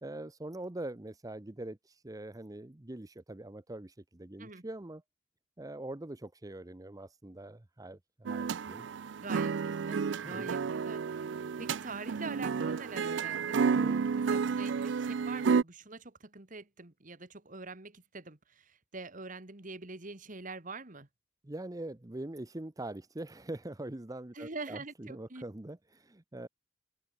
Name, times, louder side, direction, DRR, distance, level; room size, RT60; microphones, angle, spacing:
voice 1, 0.0-5.0 5.6-8.9 10.2-10.5 13.7-14.1 21.4-26.5, right 1 dB, 20° right, 0.7 m, -43 dB
sound 1, 8.3-15.6, right 5 dB, 70° right, 0.4 m, -31 dB
voice 2, 9.2-11.2 11.6-13.6 14.3-21.1 24.3-25.4, right 3 dB, 45° right, 1.9 m, -44 dB
open air
head